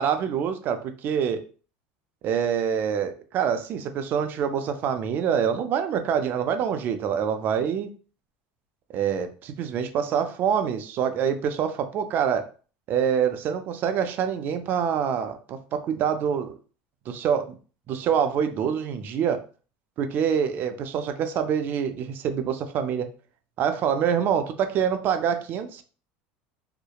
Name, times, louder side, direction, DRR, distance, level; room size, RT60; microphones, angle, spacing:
voice 1, 0.0-1.4 2.2-7.9 8.9-12.5 12.9-16.6 17.1-17.5 17.9-19.4 20.0-23.1 23.6-25.8, right 8 dB, 45° right, 8 dB, 0.4 m, -26 dB
2.8 x 2.1 x 2.3 m, 0.38 s
supercardioid pair, 115°, 5 cm